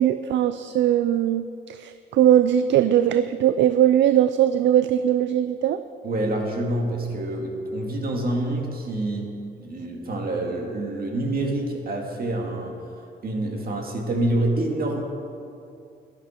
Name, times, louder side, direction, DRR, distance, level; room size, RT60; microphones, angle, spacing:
voice 1, 0.0-5.8, right 11 dB, 70° right, 12 dB, 0.4 m, -20 dB
voice 2, 6.0-9.3 9.6-12.8 13.2-15.0, right 1 dB, 50° right, 1 dB, 2.1 m, -27 dB
11.5 x 11.0 x 4.4 m, 2.5 s
cardioid pair, 90°, 20 cm